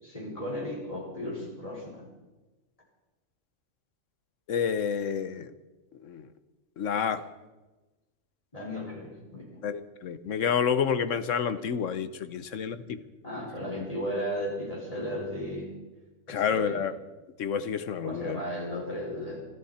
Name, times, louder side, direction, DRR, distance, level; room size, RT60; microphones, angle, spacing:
voice 1, 0.0-2.1 8.5-9.6 13.2-15.8 16.3-16.8 18.0-19.4, equal, 30° left, -4 dB, 5.2 m, -35 dB
voice 2, 4.5-5.5 6.0-6.3 6.8-7.2 9.6-13.0 16.3-16.9 17.4-18.4, left 7 dB, 80° left, 12 dB, 1.2 m, -29 dB
26.0 x 12.0 x 4.3 m, 1.1 s
omnidirectional pair, 1.3 m